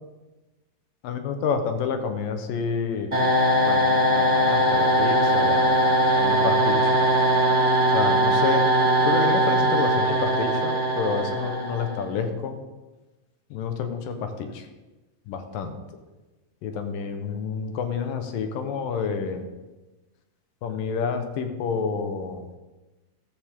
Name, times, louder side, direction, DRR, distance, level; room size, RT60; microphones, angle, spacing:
voice 1, 1.0-3.1 3.7-5.8 6.2-7.1 7.9-8.7 9.0-12.6 13.5-14.7 15.3-15.8 16.6-19.5 20.6-22.5, left 6 dB, 75° left, 7 dB, 2.7 m, -29 dB
sound 1, 3.1-12.0, right 1 dB, 10° right, 3.1 m, -21 dB
14.0 x 13.0 x 3.7 m, 1.1 s
omnidirectional pair, 4.1 m